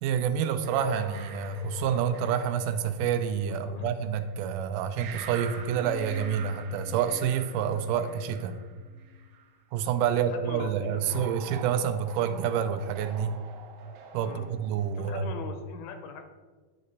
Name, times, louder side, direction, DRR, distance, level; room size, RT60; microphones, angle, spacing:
voice 1, 0.0-8.6 9.7-13.4 14.1-15.3, right 8 dB, 90° right, 9 dB, 2.2 m, -28 dB
sound 1, 0.6-4.3 5.0-9.4 11.1-15.4, right 4 dB, 70° right, 1.7 m, -45 dB
voice 2, 10.3-11.1 14.2-14.5 14.9-16.2, left 5 dB, 80° left, 6 dB, 1.8 m, -41 dB
9.5 x 5.2 x 4.1 m, 1.4 s
omnidirectional pair, 3.7 m